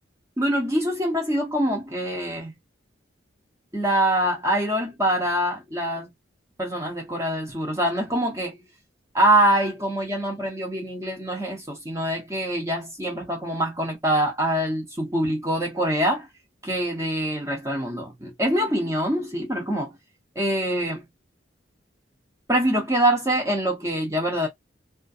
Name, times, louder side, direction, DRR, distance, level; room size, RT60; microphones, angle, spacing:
voice 1, 0.4-2.5 3.7-6.1 6.6-8.6 9.1-16.3 16.6-19.9 20.4-21.0 22.5-24.5, right 1 dB, 15° right, 0.8 m, -24 dB
2.4 x 2.1 x 2.5 m
head